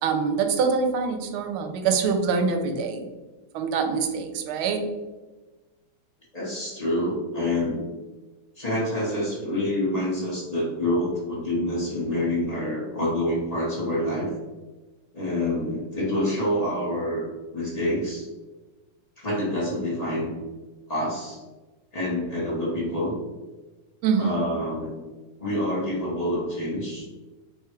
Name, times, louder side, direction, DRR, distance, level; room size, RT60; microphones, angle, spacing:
voice 1, 0.0-3.1 3.5-4.9 24.0-24.4, right 5 dB, 80° right, 5 dB, 1.4 m, -24 dB
voice 2, 6.3-7.8 8.6-14.3 15.1-17.3 17.5-18.3 19.2-20.4 20.9-21.4 21.9-23.1 24.2-25.0 25.4-27.1, left 1 dB, 30° left, -6 dB, 0.8 m, -27 dB
3.5 x 2.3 x 4.3 m, 1.2 s
omnidirectional pair, 2.3 m